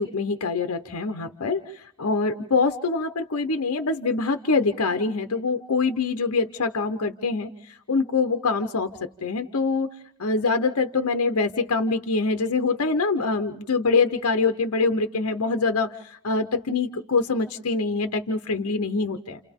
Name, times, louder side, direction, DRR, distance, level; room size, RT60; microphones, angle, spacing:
voice 1, 0.0-9.9 10.2-19.4, left 4 dB, 70° left, 7 dB, 0.8 m, -24 dB
29.5 x 29.5 x 3.6 m, 0.70 s
head